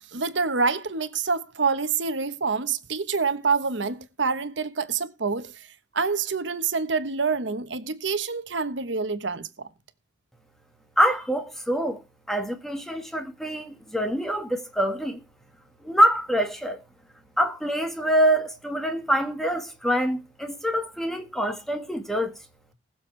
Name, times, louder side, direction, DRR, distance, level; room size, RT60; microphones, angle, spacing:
voice 1, 0.1-5.7 5.9-9.7, right 5 dB, 75° right, 1.1 m, -27 dB
voice 2, 11.0-12.0 12.3-15.2 15.8-16.8 17.4-22.4, equal, ahead, 1.7 m, -25 dB
20.5 x 7.1 x 3.3 m
head